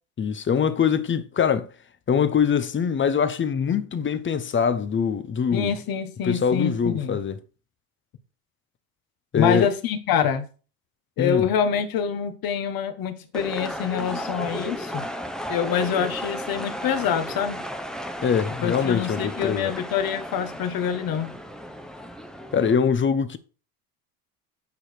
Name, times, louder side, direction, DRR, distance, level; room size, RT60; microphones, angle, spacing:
voice 1, 0.2-1.7 2.1-5.7 6.2-7.4 9.3-9.7 11.2-11.5 18.2-19.7 22.5-23.4, left 7 dB, 25° left, 0.9 m, -23 dB
voice 2, 5.5-7.2 9.3-10.5 11.2-15.0 15.5-17.6 18.6-21.3, left 8 dB, 50° left, 1.6 m, -26 dB
sound 1, 13.3-22.7, equal, ahead, 0.9 m, -34 dB
9.3 x 4.9 x 4.6 m
supercardioid pair, 95°, 43 cm